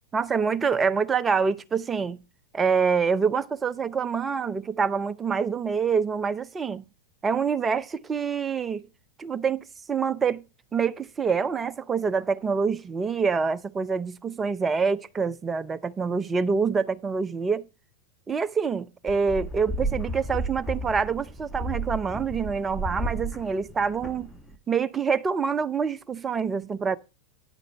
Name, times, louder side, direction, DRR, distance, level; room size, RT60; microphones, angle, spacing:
voice 1, 0.1-2.2 2.5-6.8 7.2-8.8 9.2-10.4 10.7-17.7 18.3-24.3 24.7-27.0, right 5 dB, 20° right, 0.5 m, -26 dB
sound 1, 19.1-24.6, right 2 dB, 5° left, 1.0 m, -33 dB
9.7 x 9.0 x 3.0 m
figure-of-eight pair, 90°, 0 cm